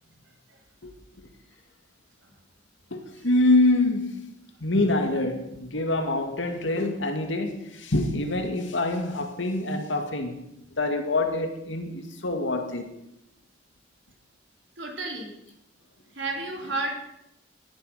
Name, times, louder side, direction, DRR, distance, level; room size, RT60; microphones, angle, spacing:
voice 1, 0.8-1.3 2.9-4.3 4.6-10.4 10.7-12.9, left 2 dB, 80° left, 2.2 m, -25 dB
voice 2, 14.8-15.3 16.1-17.0, right 2 dB, 75° right, 3.8 m, -32 dB
15.5 x 11.0 x 5.7 m
head